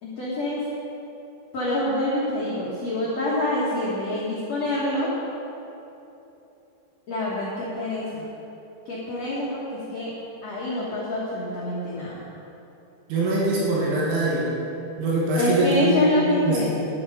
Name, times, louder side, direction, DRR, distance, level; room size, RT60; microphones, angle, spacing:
voice 1, 0.0-0.6 1.5-5.1 7.1-8.3 8.8-10.1 10.4-12.2 15.4-16.6, left 1 dB, 85° left, -7 dB, 1.4 m, -26 dB
voice 2, 13.1-14.5 15.0-16.1 16.5-16.7, right 2 dB, 80° right, -5 dB, 3.9 m, -23 dB
11.5 x 8.4 x 5.0 m, 3.0 s
omnidirectional pair, 5.4 m